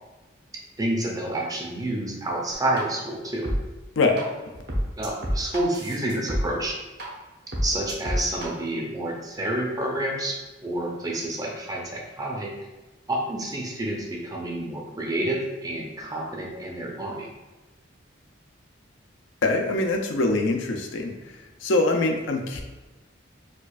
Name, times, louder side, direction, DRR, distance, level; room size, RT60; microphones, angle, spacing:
voice 1, 0.8-3.5 5.0-6.8 7.6-12.5 13.1-17.3, right 1 dB, 20° right, -1 dB, 0.5 m, -29 dB
sound 1, 2.8-2.9 3.4-3.6 4.2-4.3 4.7-6.4 7.0-7.1 7.5-8.5, equal, 55° right, 0.7 m, -27 dB
voice 2, 19.4-21.1 21.6-22.6, left 2 dB, 75° left, 3 dB, 0.5 m, -23 dB
4.4 x 2.4 x 2.4 m, 1.1 s
head